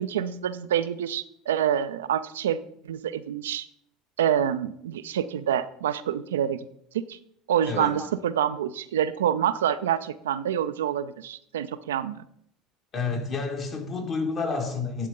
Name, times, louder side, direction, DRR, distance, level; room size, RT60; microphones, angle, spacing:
voice 1, 0.0-2.6 2.8-3.7 4.2-6.6 6.9-7.2 7.5-12.2, right 9 dB, 80° right, 13 dB, 0.3 m, -27 dB
voice 2, 7.7-8.1 12.9-15.1, left 4 dB, 40° left, 3 dB, 1.7 m, -30 dB
11.0 x 3.7 x 3.7 m, 0.70 s
hypercardioid pair, 75°, 0 cm